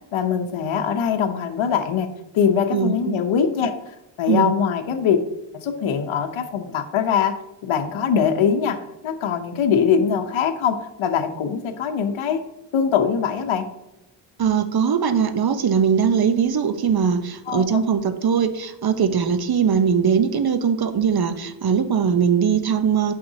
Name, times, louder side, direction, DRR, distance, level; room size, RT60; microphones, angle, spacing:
voice 1, 0.1-5.2 5.5-7.3 7.6-8.8 9.0-12.4 12.7-13.7 17.5-17.6, left 7 dB, 70° left, 5 dB, 0.9 m, -22 dB
voice 2, 2.7-3.2 4.3-4.5 14.4-23.1, right 7 dB, 50° right, 11 dB, 0.9 m, -20 dB
8.5 x 5.8 x 2.8 m, 0.93 s
cardioid pair, 60°, 50 cm